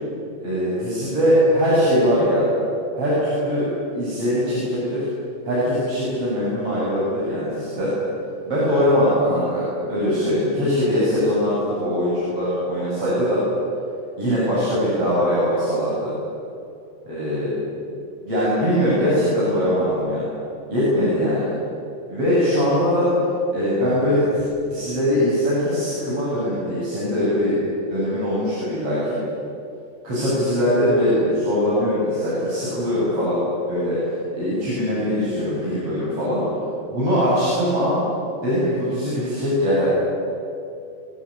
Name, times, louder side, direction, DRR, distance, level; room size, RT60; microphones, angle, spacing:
voice 1, 0.4-2.4 3.0-3.7 3.9-5.1 5.5-7.9 8.5-13.4 14.2-16.1 17.1-17.6 18.2-20.3 20.7-21.5 22.1-23.1 23.5-27.6 27.9-29.2 30.0-33.4 33.7-34.0 34.3-36.4 36.9-38.0 38.4-39.9, equal, 35° right, -9 dB, 8.9 m, -21 dB
25.5 x 20.5 x 10.0 m, 2.6 s
omnidirectional pair, 4.9 m